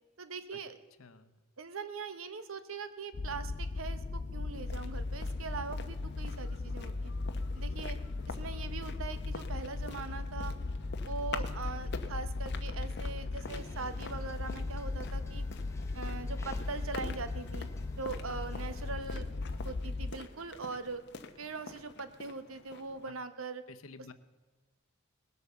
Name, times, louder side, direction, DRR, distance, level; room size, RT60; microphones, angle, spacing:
voice 1, 0.2-0.8 1.6-7.1 7.5-8.0 8.3-10.5 11.0-15.4 15.9-17.7 18.0-19.3 19.6-21.0 21.4-23.6, right 4 dB, 75° right, 11 dB, 1.0 m, -41 dB
voice 2, 1.0-1.4 23.7-24.1, left 4 dB, 85° left, 11 dB, 0.9 m, -51 dB
sound 1, 3.1-20.1, left 3 dB, 40° left, 0.4 m, -37 dB
sound 2, 4.5-23.1, left 4 dB, 55° left, 1.0 m, -47 dB
sound 3, 13.4-19.0, left 1 dB, 15° left, 1.1 m, -53 dB
19.5 x 8.2 x 6.9 m, 1.3 s
head